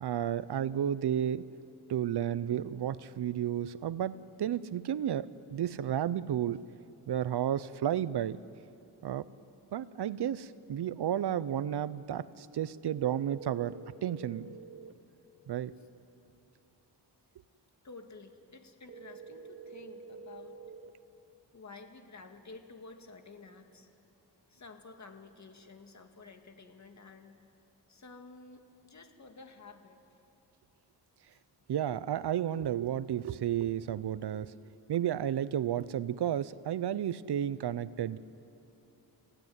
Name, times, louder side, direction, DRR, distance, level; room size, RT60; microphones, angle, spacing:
voice 1, 0.0-1.4 1.9-6.6 7.1-8.4 9.0-9.3 9.7-14.5 15.5-15.7 31.7-34.5 34.9-38.2, right 10 dB, 70° right, 17 dB, 0.8 m, -32 dB
sound 1, 12.9-14.9 18.9-20.9, right 5 dB, 30° right, 1.7 m, -48 dB
voice 2, 17.8-20.6 21.5-23.9 24.5-27.4 27.9-30.2 31.3-31.4, left 3 dB, 40° left, 5 dB, 2.1 m, -52 dB
29.5 x 16.0 x 9.5 m, 2.8 s
wide cardioid pair, 105°, 41 cm